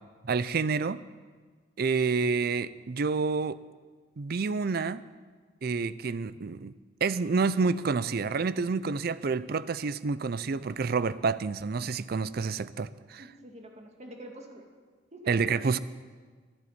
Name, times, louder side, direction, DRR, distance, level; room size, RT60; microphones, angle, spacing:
voice 1, 0.2-1.0 1.8-3.6 4.2-5.0 5.6-6.7 7.0-13.2 15.3-15.8, right 4 dB, 50° right, 17 dB, 0.5 m, -28 dB
voice 2, 13.2-14.7 15.1-15.8, right 1 dB, 35° right, 2 dB, 2.0 m, -46 dB
11.5 x 11.0 x 9.8 m, 1.5 s
head